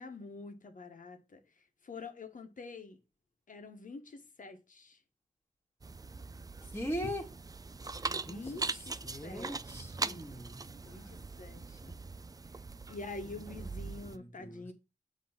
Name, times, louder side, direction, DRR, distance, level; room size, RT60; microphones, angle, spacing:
voice 1, 0.0-1.4 1.8-3.0 3.5-5.0 8.1-9.0 9.2-9.5 10.0-10.3 10.8-12.0 12.9-14.7, left 3 dB, 70° left, 1.2 m, -46 dB
sound 1, 5.8-14.2, right 3 dB, 25° right, 0.4 m, -41 dB
voice 2, 6.7-7.3 8.2-8.5 9.0-10.6 10.8-11.2 13.2-13.4 14.0-14.7, equal, 15° left, 2.0 m, -41 dB
7.9 x 3.1 x 5.7 m
wide cardioid pair, 75°, 14 cm